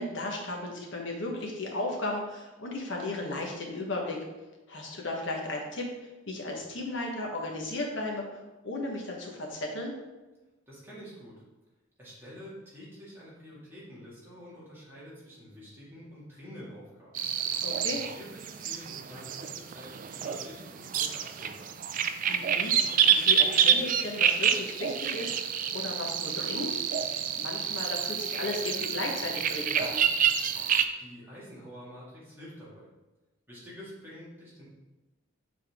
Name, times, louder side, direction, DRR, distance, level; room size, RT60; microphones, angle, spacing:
voice 1, 0.0-4.2 4.7-9.9 17.6-18.0 22.3-22.8 23.1-30.0, left 2 dB, 60° left, 0 dB, 1.3 m, -35 dB
voice 2, 10.7-11.4 12.0-17.2 17.8-21.8 31.0-32.9 33.5-34.7, equal, 10° right, -8 dB, 2.2 m, -47 dB
sound 1, 17.1-30.8, right 8 dB, 40° right, 0.3 m, -27 dB
7.0 x 4.1 x 3.6 m, 1.1 s
head